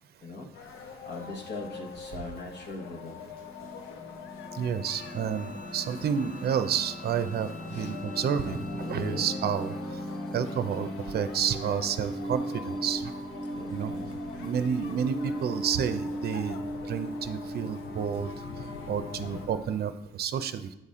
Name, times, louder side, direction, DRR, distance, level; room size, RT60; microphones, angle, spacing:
sound 1, 0.5-19.5, left 6 dB, 80° left, 0.7 m, -44 dB
voice 1, 1.0-3.3 7.7-7.9 8.8-9.3 13.5-14.1, left 2 dB, 60° left, 1 dB, 1.3 m, -40 dB
sound 2, 2.9-19.9, equal, ahead, 0.6 m, -38 dB
voice 2, 4.5-10.0 10.3-13.1 13.7-13.9 14.4-16.6 16.8-18.4 18.9-20.8, right 8 dB, 55° right, 11 dB, 0.5 m, -30 dB
Bowed string instrument, 4.7-9.9, left 3 dB, 40° left, 1.4 m, -50 dB
8.0 x 4.1 x 3.7 m, 0.96 s
cardioid pair, 90°, 20 cm